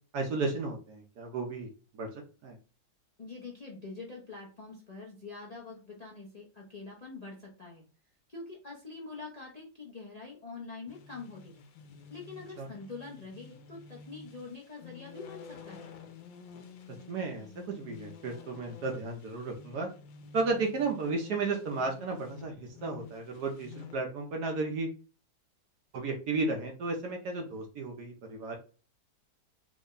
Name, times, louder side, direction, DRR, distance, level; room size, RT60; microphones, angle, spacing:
voice 1, 0.1-1.7 1.9-2.6 12.6-12.7 17.1-19.9 20.3-24.9 25.9-28.6, right 3 dB, 70° right, 2 dB, 1.1 m, -33 dB
voice 2, 3.2-7.8 8.3-11.6 12.1-15.9, left 4 dB, 65° left, -3 dB, 0.4 m, -45 dB
sound 1, 10.9-24.0, left 6 dB, 80° left, 1.4 m, -50 dB
3.5 x 2.1 x 3.7 m, 0.36 s
omnidirectional pair, 2.0 m